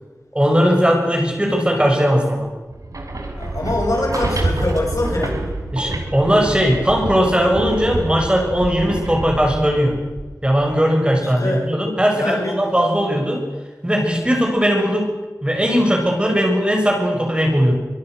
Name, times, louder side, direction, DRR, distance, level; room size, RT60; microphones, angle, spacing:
voice 1, 0.3-2.5 5.7-10.0 10.4-13.4 13.8-15.1 15.4-17.7, equal, 15° right, 1 dB, 6.8 m, -18 dB
sound 1, 2.7-10.7, right 2 dB, 75° right, 4.5 m, -27 dB
voice 2, 3.4-5.4 11.2-11.6 12.1-12.5, left 2 dB, 70° left, 0 dB, 8.0 m, -23 dB
25.0 x 23.5 x 6.6 m, 1.2 s
wide cardioid pair, 70°, 6 cm